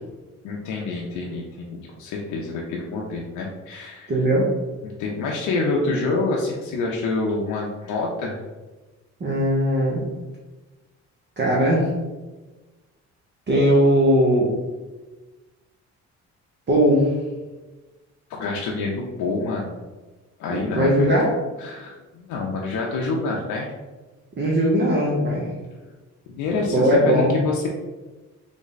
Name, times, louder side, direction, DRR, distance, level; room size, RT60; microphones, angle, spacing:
voice 1, 0.4-4.1 4.8-8.4 18.3-19.8 20.4-21.1 21.6-23.7 26.3-27.7, left 3 dB, 80° left, -1 dB, 0.6 m, -27 dB
voice 2, 4.1-4.5 9.2-10.0 11.4-11.9 13.5-14.5 16.7-17.1 20.5-21.3 24.4-25.5 26.7-27.3, equal, 35° right, -4 dB, 0.7 m, -19 dB
3.4 x 2.1 x 3.9 m, 1.2 s
cardioid pair, 90°, 30 cm